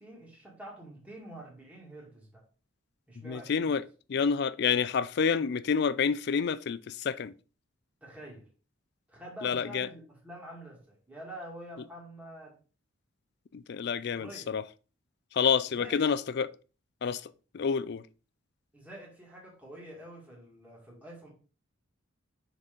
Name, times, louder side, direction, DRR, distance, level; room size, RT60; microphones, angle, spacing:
voice 1, 0.0-2.4 3.1-3.8 8.0-8.4 9.1-12.5 14.1-14.5 15.7-16.0 18.7-21.3, right 1 dB, 5° right, 2.1 m, -47 dB
voice 2, 3.2-7.3 9.4-9.9 13.5-14.6 15.3-16.5 17.0-18.0, left 6 dB, 50° left, 0.4 m, -28 dB
5.9 x 4.1 x 5.1 m
head